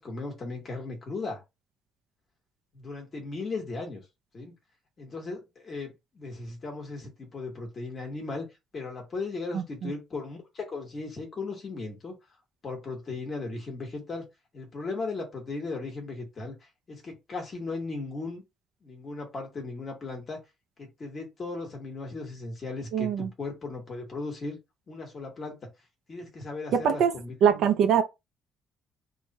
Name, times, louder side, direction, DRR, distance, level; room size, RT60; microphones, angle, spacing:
voice 1, 0.0-1.4 2.7-4.0 4.3-4.5 5.0-8.5 8.7-12.1 12.6-14.3 14.5-18.4 18.8-20.4 20.8-24.6 24.9-25.6 26.1-27.3, left 3 dB, 25° left, 1.3 m, -37 dB
voice 2, 9.5-9.9 22.9-23.3 26.7-27.1 27.4-28.0, right 8 dB, 65° right, 0.5 m, -23 dB
3.2 x 2.3 x 4.0 m
cardioid pair, 180°, 0 cm